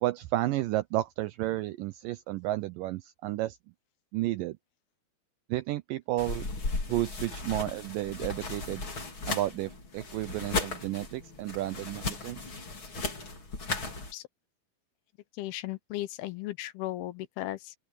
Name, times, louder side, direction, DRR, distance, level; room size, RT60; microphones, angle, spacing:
voice 1, 0.0-3.6 4.1-4.6 5.5-6.5 6.9-8.9 9.3-12.4, right 16 dB, 80° right, 1.9 m, -32 dB
sound 1, 6.2-14.1, left 3 dB, 30° left, 4.3 m, -36 dB
voice 2, 15.4-17.7, left 15 dB, 80° left, 2.8 m, -36 dB
open air
omnidirectional pair, 4.5 m